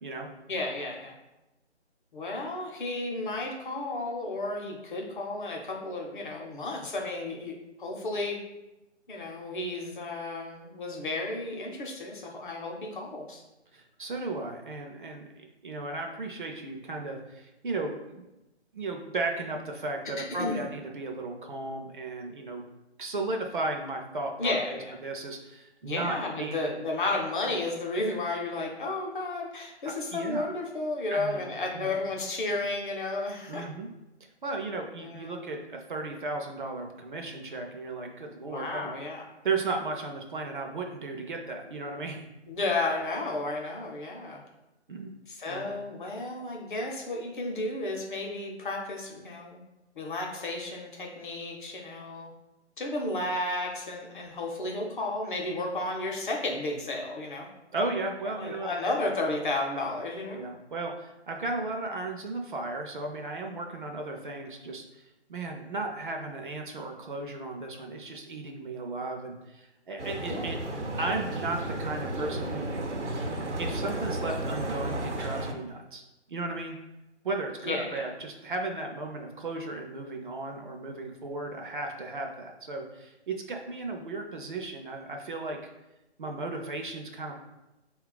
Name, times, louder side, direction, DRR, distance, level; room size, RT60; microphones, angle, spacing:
voice 1, 0.5-1.2 2.1-8.4 9.1-13.4 20.2-20.7 24.4-24.9 25.8-33.6 35.0-35.4 38.5-39.2 42.5-44.4 45.3-49.6 49.9-52.3 52.8-57.5 58.3-60.4 70.2-70.8 77.6-78.1, left 2 dB, 45° left, 0 dB, 0.8 m, -33 dB
voice 2, 13.7-18.2 18.7-22.6 23.0-26.6 29.9-30.5 31.1-32.0 33.5-33.9 34.4-38.9 39.4-42.2 44.9-45.1 45.5-45.7 57.7-58.7 60.3-70.6 70.9-72.7 73.2-76.0 76.3-76.8 77.2-85.6 86.2-87.3, right 3 dB, 45° right, 2 dB, 0.5 m, -35 dB
sound 1, 70.0-75.5, right 1 dB, 90° right, 0.8 m, -33 dB
4.1 x 2.3 x 3.8 m, 0.98 s
figure-of-eight pair, 150°, 34 cm